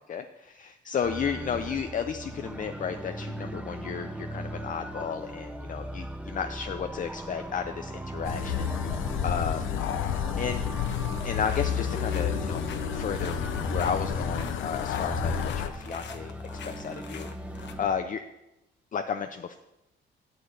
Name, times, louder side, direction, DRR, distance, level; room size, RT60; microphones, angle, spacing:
voice 1, 0.9-9.6 10.4-10.6 11.2-13.4 13.7-16.4 16.7-17.3 17.8-18.2 18.9-19.6, left 7 dB, 40° left, 7 dB, 0.6 m, -33 dB
sound 1, 1.0-17.9, right 1 dB, 5° right, 0.7 m, -38 dB
sound 2, 8.2-15.7, left 10 dB, 80° left, 0.7 m, -31 dB
sound 3, 8.3-8.5 8.8-9.2 9.5-10.3 10.6-17.7, left 6 dB, 65° left, 1.2 m, -46 dB
7.5 x 6.6 x 8.0 m, 0.93 s
cardioid pair, 90°, 20 cm